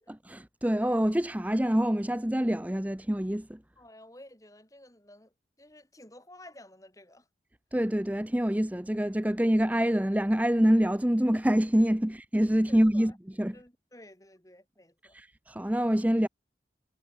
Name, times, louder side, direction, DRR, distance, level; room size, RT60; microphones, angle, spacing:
voice 1, 0.1-3.6 7.7-13.1 13.4-13.6 15.1-16.3, equal, 10° right, 0.7 m, -26 dB
voice 2, 3.8-7.3 12.7-13.2 13.5-15.2, left 1 dB, 20° left, 4.0 m, -53 dB
head